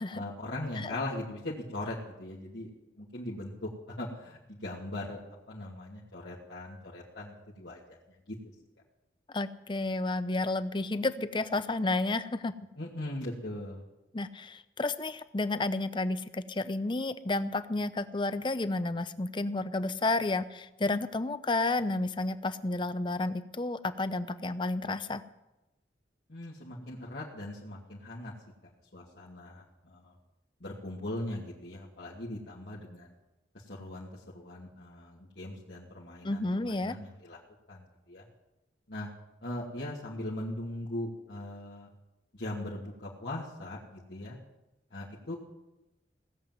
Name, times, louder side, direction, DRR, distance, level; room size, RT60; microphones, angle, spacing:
voice 1, 0.1-5.2 5.5-8.4 12.8-13.8 26.3-28.3 28.6-30.2 30.6-33.1 33.5-37.4 37.7-38.2 38.9-39.1 39.4-41.9 42.3-44.4 44.9-45.3, left 1 dB, 70° left, -7 dB, 2.5 m, -40 dB
voice 2, 9.3-12.5 14.1-25.2 36.2-37.0, left 2 dB, 25° left, 13 dB, 0.6 m, -31 dB
18.0 x 7.8 x 9.3 m, 0.98 s
head